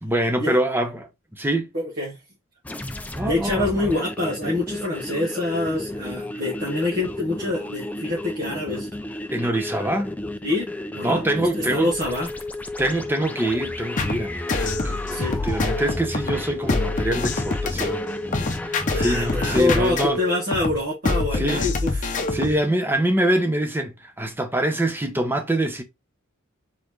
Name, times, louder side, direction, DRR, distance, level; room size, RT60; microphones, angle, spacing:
voice 1, 0.0-1.7 3.1-4.0 9.3-10.2 11.0-11.9 12.8-18.1 19.0-20.2 21.3-21.7 22.3-25.8, right 1 dB, 10° right, 0.8 m, -24 dB
voice 2, 1.7-2.2 3.2-8.9 10.4-11.2 11.6-12.3 15.1-15.4 18.9-22.1, left 2 dB, 45° right, 1.6 m, -26 dB
sound 1, 2.6-20.0, left 1 dB, 5° left, 0.4 m, -33 dB
sound 2, 14.0-22.6, left 2 dB, 40° left, 0.8 m, -26 dB
4.0 x 4.0 x 3.1 m
head